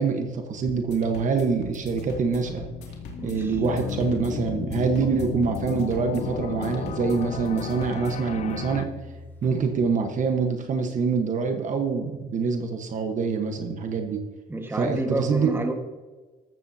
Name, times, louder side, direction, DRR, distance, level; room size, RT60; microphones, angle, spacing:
voice 1, 0.0-2.7 3.2-8.9 9.4-14.2 14.7-15.5, right 5 dB, 50° right, 5 dB, 1.3 m, -25 dB
sound 1, 0.7-8.3, left 2 dB, 80° left, 2.6 m, -43 dB
sound 2, 1.9-8.9, left 9 dB, 45° left, 0.5 m, -34 dB
voice 2, 3.2-3.9 14.5-15.7, right 2 dB, 15° right, 4 dB, 1.6 m, -30 dB
sound 3, 5.1-10.3, left 2 dB, 10° left, 1.7 m, -46 dB
13.5 x 13.5 x 2.8 m, 1.3 s
cardioid pair, 110°, 17 cm